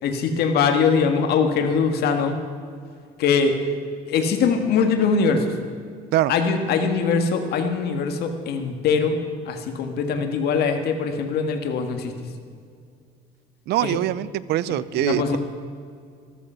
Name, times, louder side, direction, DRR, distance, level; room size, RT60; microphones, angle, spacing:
voice 1, 0.0-2.4 3.2-3.6 4.1-5.5 6.3-9.2 9.4-12.1 13.8-14.0 14.7-15.4, left 5 dB, 70° left, 5 dB, 1.6 m, -22 dB
voice 2, 13.7-15.4, right 14 dB, 75° right, 18 dB, 0.5 m, -23 dB
14.0 x 13.5 x 5.6 m, 2.2 s
cardioid pair, 110°, 17 cm